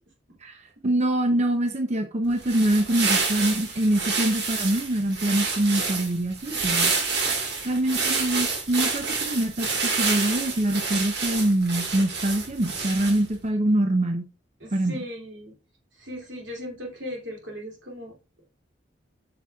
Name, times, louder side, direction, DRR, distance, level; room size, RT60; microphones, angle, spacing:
voice 1, 0.4-6.9 7.6-14.3 14.7-14.9, right 1 dB, 40° right, 0.7 m, -24 dB
sound 1, 2.3-13.4, right 4 dB, 65° right, 1.9 m, -28 dB
voice 2, 14.6-15.5 16.0-18.2, equal, 85° right, 2.7 m, -37 dB
8.1 x 6.0 x 2.4 m
head